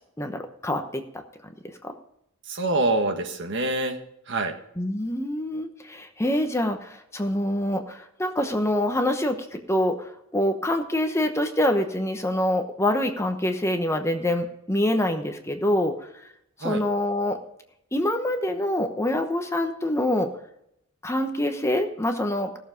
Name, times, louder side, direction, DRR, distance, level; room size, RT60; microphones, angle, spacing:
voice 1, 0.2-1.0 1.8-1.9 4.8-16.1 16.6-17.4 17.9-20.3 21.0-22.6, left 1 dB, 15° left, 6 dB, 1.0 m, -25 dB
voice 2, 2.5-4.0 4.3-4.6 16.6-16.8, right 2 dB, 60° right, 5 dB, 1.6 m, -25 dB
16.0 x 7.1 x 5.1 m, 0.75 s
head